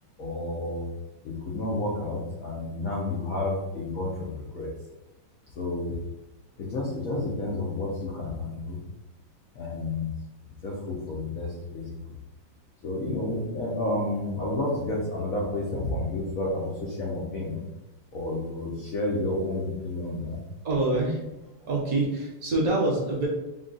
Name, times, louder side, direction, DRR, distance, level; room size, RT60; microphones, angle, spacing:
voice 1, 0.2-0.9 1.2-4.7 5.6-6.1 6.6-8.8 9.5-10.1 10.6-12.0 12.8-17.6 18.1-20.4, left 2 dB, 65° left, -4 dB, 0.8 m, -30 dB
voice 2, 20.6-21.3 21.7-23.3, right 2 dB, 55° right, -2 dB, 1.1 m, -26 dB
3.8 x 2.3 x 3.8 m, 0.98 s
omnidirectional pair, 2.3 m